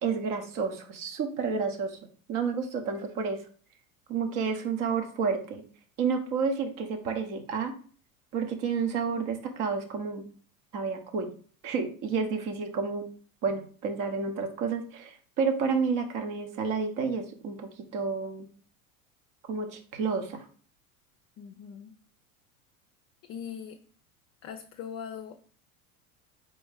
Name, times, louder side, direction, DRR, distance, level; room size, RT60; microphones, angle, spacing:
voice 1, 0.0-2.0 2.3-3.4 4.1-5.6 6.0-7.7 8.3-10.2 10.7-11.3 11.6-13.1 13.4-18.5 19.5-20.4, right 5 dB, 50° right, 5 dB, 1.0 m, -30 dB
voice 2, 21.4-22.0 23.2-23.8 24.4-25.4, left 7 dB, 35° left, 6 dB, 0.5 m, -41 dB
4.3 x 3.1 x 3.5 m, 0.43 s
hypercardioid pair, 80°, 42 cm